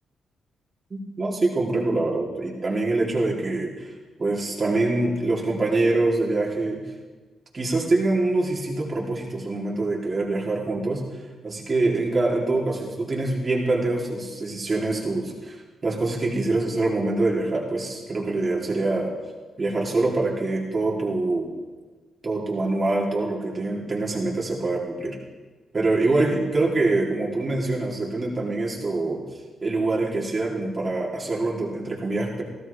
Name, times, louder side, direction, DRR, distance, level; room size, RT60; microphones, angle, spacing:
voice 1, 0.9-3.9 4.2-6.8 7.5-11.0 11.4-19.1 19.6-21.5 22.2-25.2 25.7-29.2 29.6-32.4, right 2 dB, 35° right, -2 dB, 3.8 m, -25 dB
16.0 x 14.0 x 3.7 m, 1.3 s
supercardioid pair, 60°, 0 cm